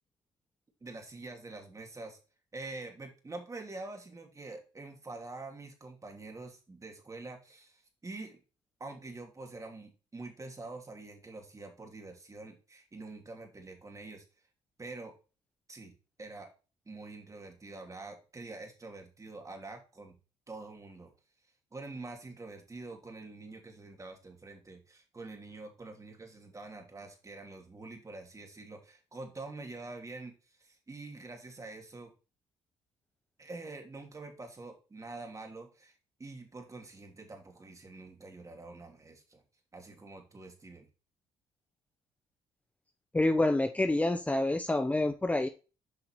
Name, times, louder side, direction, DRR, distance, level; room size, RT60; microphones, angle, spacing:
voice 1, 0.8-2.2 2.5-8.4 8.8-14.2 14.8-15.1 15.7-15.9 16.2-16.5 16.8-20.1 20.5-21.1 21.7-32.1 33.4-39.4 39.7-40.9, right 3 dB, 25° right, 3 dB, 2.9 m, -46 dB
voice 2, 43.1-45.5, left 2 dB, 10° left, 8 dB, 0.8 m, -27 dB
8.1 x 5.7 x 3.0 m, 0.33 s
supercardioid pair, 65°, 12 cm